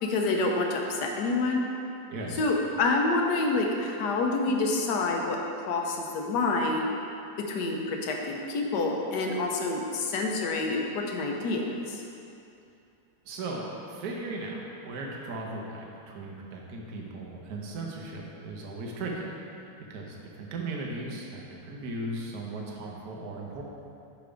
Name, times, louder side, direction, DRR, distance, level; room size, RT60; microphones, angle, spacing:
voice 1, 0.0-1.6 2.4-5.4 5.7-6.9 7.5-12.0, left 3 dB, 85° left, 1 dB, 1.4 m, -27 dB
voice 2, 2.1-2.5 13.2-19.6 19.9-23.6, right 2 dB, 70° right, -1 dB, 1.3 m, -37 dB
5.7 x 5.2 x 5.0 m, 2.7 s
omnidirectional pair, 1.7 m